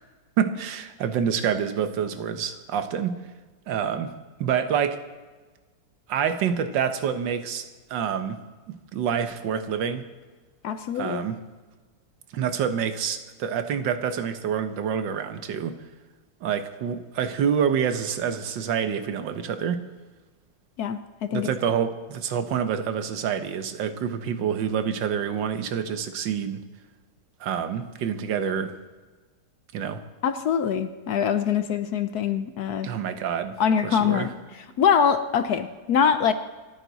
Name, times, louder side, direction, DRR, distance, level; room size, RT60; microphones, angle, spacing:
voice 1, 0.4-3.2 3.7-4.1 4.4-5.0 6.1-8.4 8.7-10.0 10.9-11.4 12.3-15.8 16.4-19.9 21.3-26.6 27.4-28.7 29.7-30.0 32.8-33.6 33.8-34.3, right 8 dB, 85° right, 9 dB, 1.6 m, -27 dB
voice 2, 10.6-11.3 20.8-21.5 30.2-32.9 33.6-34.3 34.8-36.3, left 7 dB, 65° left, 10 dB, 1.1 m, -23 dB
27.0 x 9.4 x 4.0 m, 1.3 s
omnidirectional pair, 1.9 m